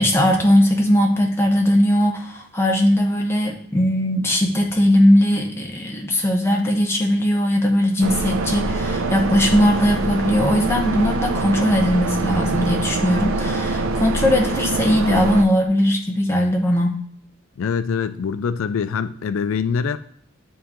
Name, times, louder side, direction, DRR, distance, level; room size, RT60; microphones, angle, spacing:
voice 1, 0.0-17.0, equal, 10° left, 0.9 m, -19 dB
sound 1, 8.0-15.4, right 2 dB, 90° right, 0.6 m, -24 dB
voice 2, 17.6-20.0, left 6 dB, 90° left, 0.4 m, -24 dB
9.3 x 3.7 x 2.9 m
head